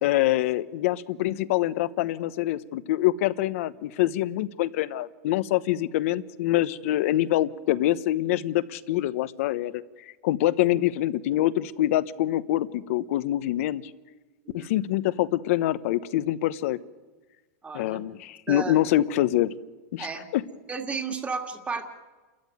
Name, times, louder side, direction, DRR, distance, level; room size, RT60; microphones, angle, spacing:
voice 1, 0.0-9.8 10.2-13.8 14.5-16.8 17.7-19.5 19.9-20.4, left 14 dB, 65° left, 16 dB, 1.0 m, -25 dB
voice 2, 17.6-18.0 18.5-18.8 20.0-20.3 20.7-21.9, right 5 dB, 15° right, 6 dB, 2.4 m, -33 dB
29.0 x 14.0 x 9.4 m, 1.3 s
supercardioid pair, 140°, 8 cm